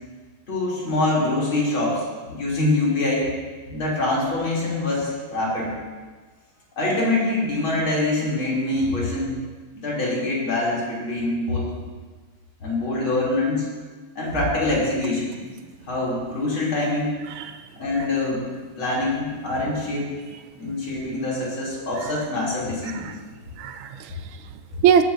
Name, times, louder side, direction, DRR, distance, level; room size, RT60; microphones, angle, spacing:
voice 1, 0.5-3.3 3.7-5.7 6.8-9.4 9.7-11.7 12.6-13.7 14.2-15.4 15.9-17.1 17.8-18.5 18.8-20.1 20.6-23.1, left 2 dB, 70° left, -6 dB, 4.2 m, -24 dB
voice 2, 17.3-17.7 18.0-18.1 22.0-22.1 22.9-23.2 23.6-25.0, right 8 dB, 80° right, 9 dB, 1.5 m, -24 dB
17.5 x 12.0 x 2.8 m, 1.4 s
omnidirectional pair, 2.3 m